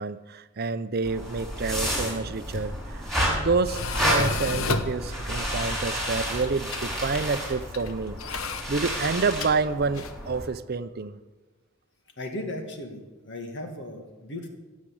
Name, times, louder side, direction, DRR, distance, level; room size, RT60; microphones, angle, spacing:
voice 1, 0.0-8.2 8.7-11.2, right 4 dB, 45° right, 13 dB, 0.6 m, -28 dB
sound 1, 1.0-10.4, equal, ahead, 5.9 m, -31 dB
Tools, 2.3-10.3, left 3 dB, 80° left, 1.1 m, -34 dB
voice 2, 12.2-14.5, left 1 dB, 55° left, 4 dB, 2.3 m, -36 dB
16.5 x 7.4 x 8.5 m, 1.2 s
head